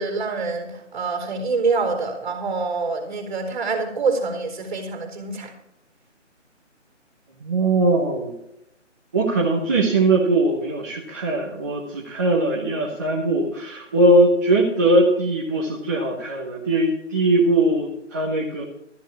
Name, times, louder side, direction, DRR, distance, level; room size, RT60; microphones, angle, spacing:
voice 1, 0.0-5.5, right 4 dB, 40° right, 4 dB, 4.3 m, -26 dB
voice 2, 7.4-8.3 9.1-18.6, right 2 dB, 15° right, -5 dB, 1.0 m, -20 dB
14.0 x 7.4 x 7.0 m, 0.80 s
figure-of-eight pair, 165°, 37 cm